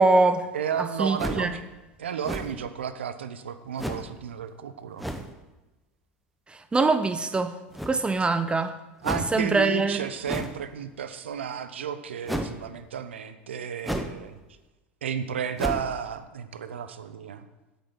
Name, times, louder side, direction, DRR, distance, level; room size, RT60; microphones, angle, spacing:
voice 1, 0.0-0.5 1.0-1.6 6.5-7.5 7.9-8.7 9.3-10.0, right 3 dB, 15° right, 10 dB, 0.8 m, -23 dB
voice 2, 0.5-1.6 2.0-5.1 9.0-14.4 15.0-17.4, right 8 dB, 90° right, 11 dB, 0.8 m, -32 dB
sound 1, 1.2-1.6 2.2-2.7 3.8-4.1 5.0-5.3 7.7-8.2 9.0-9.4 10.3-10.7 12.3-12.6 13.8-14.2 14.6-14.7 15.6-16.0, equal, ahead, 1.2 m, -32 dB
8.3 x 8.1 x 8.0 m, 1.1 s
hypercardioid pair, 90°, 6 cm